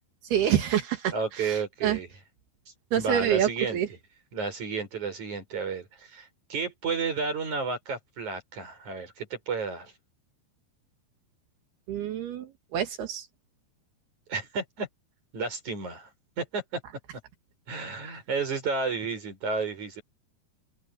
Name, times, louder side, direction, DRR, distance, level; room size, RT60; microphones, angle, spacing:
voice 1, 0.2-2.0 2.9-3.9 11.9-13.3, right 10 dB, 60° right, 3.9 m, -27 dB
voice 2, 1.1-2.1 3.0-3.8 4.3-9.9 14.3-14.9 15.3-16.1 16.4-16.8 17.7-20.0, right 4 dB, 40° right, 7.9 m, -32 dB
open air
omnidirectional pair, 5.3 m